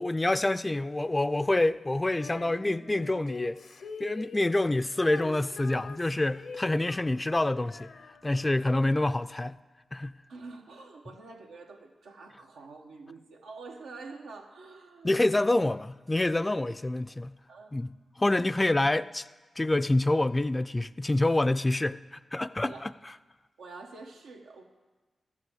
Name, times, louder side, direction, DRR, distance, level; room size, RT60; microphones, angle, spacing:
voice 1, 0.0-3.6 4.0-7.9 8.2-9.6 9.9-10.1 15.0-17.3 17.7-17.9 18.2-19.2 19.6-22.9, left 2 dB, 25° left, 13 dB, 0.4 m, -27 dB
Female singing, 2.1-8.6, left 4 dB, 75° left, 0.7 m, -45 dB
voice 2, 10.3-15.4 17.5-17.8 22.6-22.9 23.6-24.6, right 3 dB, 90° right, 2 dB, 1.1 m, -46 dB
13.0 x 5.7 x 7.8 m, 1.2 s
supercardioid pair, 45°, 0 cm